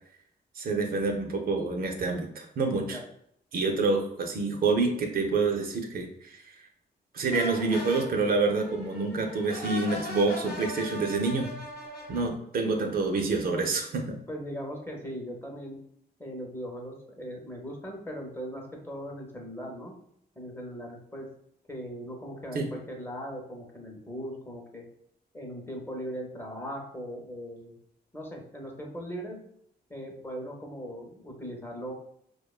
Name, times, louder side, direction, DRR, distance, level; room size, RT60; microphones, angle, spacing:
voice 1, 0.6-3.0 3.5-6.4 7.1-11.5 12.1-14.0 22.5-22.7, right 3 dB, 55° right, 3 dB, 0.4 m, -27 dB
sound 1, 7.3-12.3, left 1 dB, 65° left, 0.7 m, -39 dB
voice 2, 14.3-15.8 16.2-19.9 20.4-21.3 21.7-24.8 25.3-27.7 28.1-29.4 29.9-31.9, equal, 10° left, 0 dB, 0.6 m, -39 dB
2.5 x 2.1 x 2.3 m, 0.71 s
cardioid pair, 90°, 18 cm